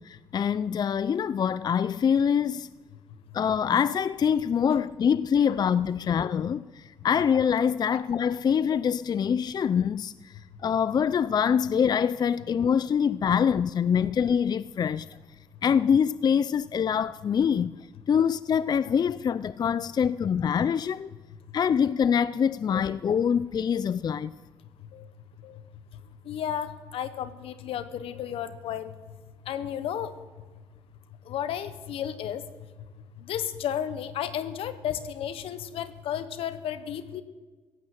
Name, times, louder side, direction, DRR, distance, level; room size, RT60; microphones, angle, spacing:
voice 1, 0.0-2.7 3.3-10.3 10.6-15.1 15.6-17.8 18.1-21.1 21.5-24.3, left 7 dB, 45° left, 0.4 m, -25 dB
voice 2, 26.2-28.9 29.4-30.1 31.2-32.5 33.2-37.2, left 9 dB, 85° left, 1.0 m, -33 dB
16.0 x 8.9 x 7.7 m
cardioid pair, 70°, 9 cm